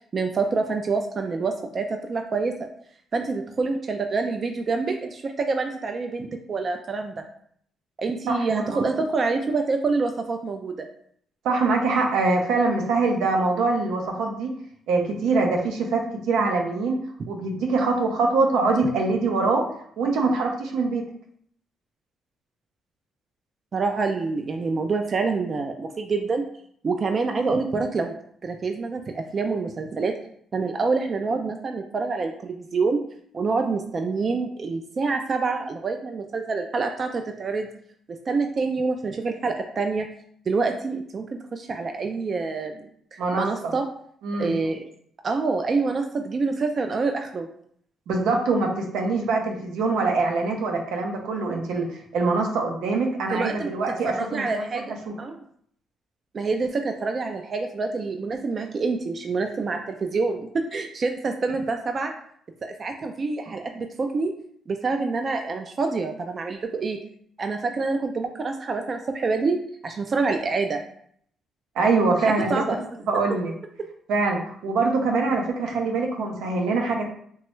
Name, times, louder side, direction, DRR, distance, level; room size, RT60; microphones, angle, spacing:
voice 1, 0.1-2.5 3.1-7.2 8.0-10.9 23.7-26.4 26.8-28.1 28.4-30.1 30.5-33.0 33.3-37.7 38.1-40.1 40.5-43.9 44.4-44.8 45.2-47.5 53.3-53.7 54.0-55.4 56.3-62.1 62.6-64.3 64.7-67.0 67.4-69.6 69.8-70.8 72.1-72.2 72.5-73.0, right 4 dB, 40° right, 4 dB, 0.3 m, -26 dB
voice 2, 8.3-8.8 11.4-14.5 14.9-16.0 16.3-17.0 17.3-19.6 20.0-21.0 43.2-43.7 44.2-44.5 48.1-54.6 55.1-55.2 71.7-72.6 73.1-73.5 74.1-77.1, right 3 dB, 85° right, 2 dB, 0.6 m, -24 dB
3.1 x 2.2 x 3.0 m, 0.64 s
cardioid pair, 90°, 0 cm